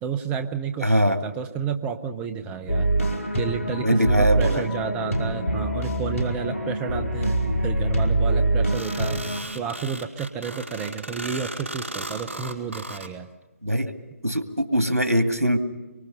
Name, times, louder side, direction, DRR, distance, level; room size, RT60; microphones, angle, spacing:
voice 1, 0.0-2.9 3.3-7.4 7.6-9.2 9.5-13.3, right 6 dB, 15° right, 9 dB, 0.8 m, -31 dB
voice 2, 0.8-1.2 3.8-4.7 13.6-13.9 14.2-15.6, equal, 90° right, 7 dB, 2.2 m, -21 dB
sound 1, 2.7-9.4, right 1 dB, 70° left, 4.9 m, -24 dB
sound 2, 8.7-13.1, right 1 dB, 55° right, 5.1 m, -36 dB
26.0 x 24.0 x 5.5 m, 1.2 s
figure-of-eight pair, 140°, 8 cm